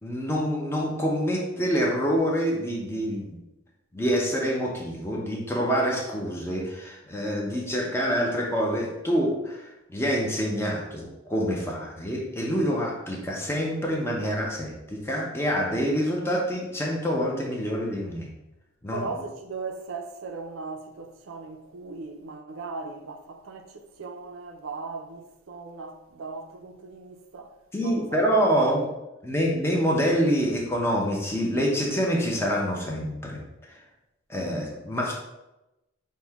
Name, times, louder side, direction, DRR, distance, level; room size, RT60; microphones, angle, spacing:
voice 1, 0.0-3.3 3.9-18.3 18.8-19.1 27.7-28.8 29.2-33.4 33.7-33.8 34.3-35.1, equal, 10° left, 0.6 m, -26 dB
voice 2, 18.9-28.8, right 4 dB, 80° right, 0.5 m, -38 dB
6.0 x 2.2 x 3.4 m
head